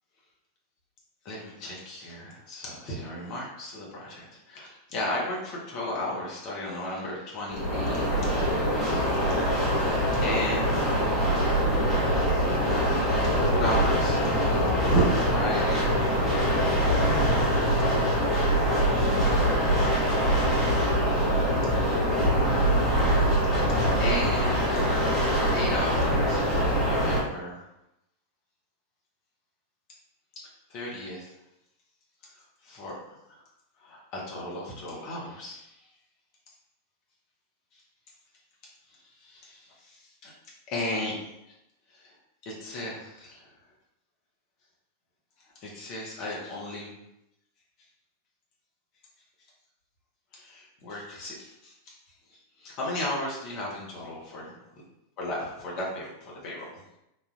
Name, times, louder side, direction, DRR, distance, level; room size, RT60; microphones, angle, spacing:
voice 1, 1.2-8.3 10.1-11.4 12.1-12.7 13.4-14.2 14.5-16.3 23.5-25.1 25.5-27.6 30.7-31.3 32.6-33.0 33.8-35.7 39.2-40.3 40.7-41.1 42.4-43.5 45.6-46.9 50.3-51.9 52.6-54.6 55.2-56.7, left 1 dB, 40° left, -4 dB, 1.1 m, -34 dB
sound 1, 7.5-27.2, equal, 5° right, 1.2 m, -24 dB
4.1 x 2.7 x 2.4 m, 0.86 s
figure-of-eight pair, 90°, 0 cm